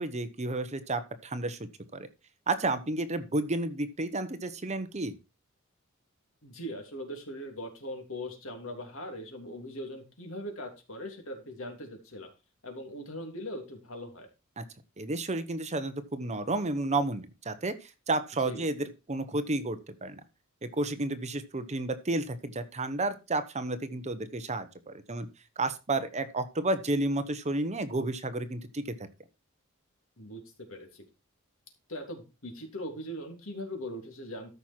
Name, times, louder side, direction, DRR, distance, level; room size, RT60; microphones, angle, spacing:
voice 1, 0.0-1.6 1.9-2.1 2.5-5.1 14.6-14.7 15.0-20.2 20.6-25.3 25.6-28.9, right 2 dB, 35° right, 11 dB, 1.0 m, -31 dB
voice 2, 6.4-12.3 12.6-14.3 18.4-18.6 30.2-30.4 30.7-31.0 31.9-34.5, equal, 70° left, 4 dB, 3.1 m, -40 dB
13.5 x 5.9 x 4.5 m, 0.28 s
head